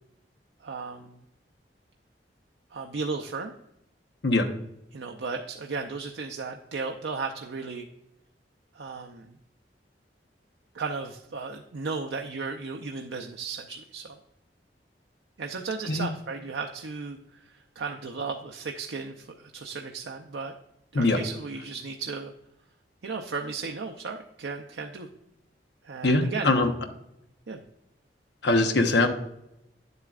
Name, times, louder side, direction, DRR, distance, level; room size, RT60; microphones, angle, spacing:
voice 1, 0.6-1.2 2.7-3.5 4.9-7.9 8.7-9.3 10.7-14.2 15.4-17.4 17.8-20.5 20.9-22.3 23.0-25.1 25.8-26.5 27.5-27.6, right 4 dB, 90° right, 2 dB, 0.6 m, -35 dB
voice 2, 26.0-26.7 28.4-29.1, left 2 dB, 70° left, 5 dB, 0.9 m, -22 dB
9.5 x 8.0 x 2.4 m, 0.84 s
head